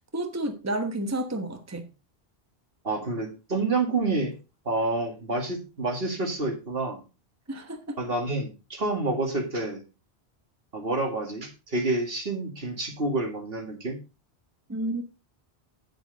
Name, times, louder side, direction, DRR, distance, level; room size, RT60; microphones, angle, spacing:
voice 1, 0.1-1.9 7.5-8.0 14.7-15.0, right 1 dB, 15° right, 5 dB, 1.1 m, -30 dB
voice 2, 2.8-4.3 4.7-7.0 8.0-9.8 10.7-14.0, right 2 dB, 60° right, 3 dB, 2.3 m, -28 dB
9.1 x 7.8 x 4.0 m, 0.29 s
omnidirectional pair, 1.1 m